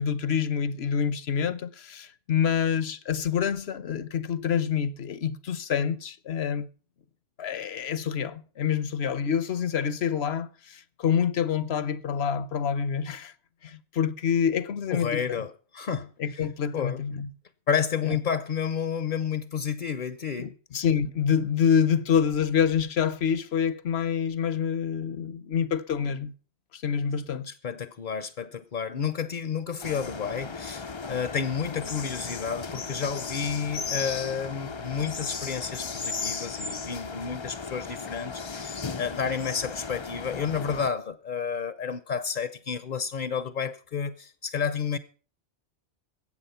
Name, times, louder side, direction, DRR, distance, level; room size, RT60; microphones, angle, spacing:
voice 1, 0.0-6.7 7.4-13.3 13.6-15.4 16.2-17.3 18.0-18.2 20.4-26.3 26.7-27.5, left 7 dB, 65° left, 1.1 m, -27 dB
voice 2, 14.9-16.5 16.7-17.0 17.7-20.6 27.5-45.0, left 7 dB, 45° left, 0.9 m, -31 dB
sound 1, 29.8-40.9, left 4 dB, 30° left, 0.6 m, -36 dB
20.5 x 8.7 x 5.7 m
omnidirectional pair, 1.2 m